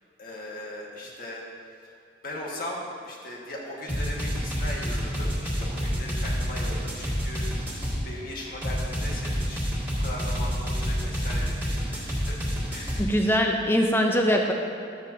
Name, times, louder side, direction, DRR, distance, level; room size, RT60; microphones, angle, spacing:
voice 1, 0.2-1.4 1.8-1.9 2.2-9.6 10.0-12.4 12.7-13.2, left 1 dB, 50° left, -3 dB, 1.6 m, -38 dB
sound 1, 3.9-8.0 8.6-13.0, equal, 10° right, 2.1 m, -28 dB
voice 2, 13.0-14.5, equal, 10° left, 2 dB, 0.7 m, -22 dB
13.5 x 7.8 x 2.8 m, 2.6 s
head